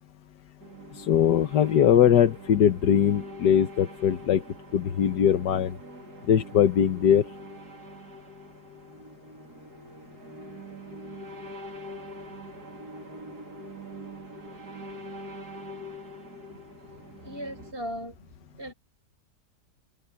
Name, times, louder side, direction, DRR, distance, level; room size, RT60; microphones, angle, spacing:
sound 1, 0.6-17.7, equal, 70° right, 4.1 m, -44 dB
voice 1, 0.9-4.4 4.7-5.8 6.3-7.3, left 9 dB, 85° left, 1.7 m, -21 dB
voice 2, 17.2-18.3 18.5-18.7, equal, 35° right, 7.9 m, -37 dB
omnidirectional pair, 1.8 m